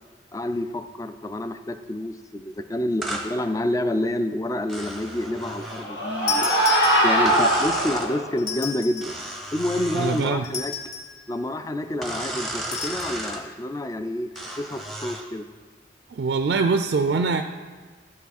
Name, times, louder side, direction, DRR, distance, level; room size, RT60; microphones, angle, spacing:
voice 1, 0.3-6.6 7.0-9.1 9.5-10.7 11.3-14.3 14.6-15.5, left 1 dB, 20° left, 9 dB, 0.3 m, -28 dB
sound 1, 3.0-3.3 4.7-5.9 7.3-8.1 9.0-10.3 12.0-13.4 14.4-15.3, right 1 dB, ahead, 0.8 m, -33 dB
sound 2, 5.3-8.3, right 1 dB, 90° left, 1.8 m, -22 dB
sound 3, 6.3-7.4 8.4-9.2 10.4-11.2 12.7-13.2, left 6 dB, 50° left, 1.8 m, -31 dB
voice 2, 9.9-10.5 16.1-17.4, right 4 dB, 60° right, 8 dB, 0.3 m, -23 dB
12.0 x 5.9 x 4.1 m, 1.5 s
head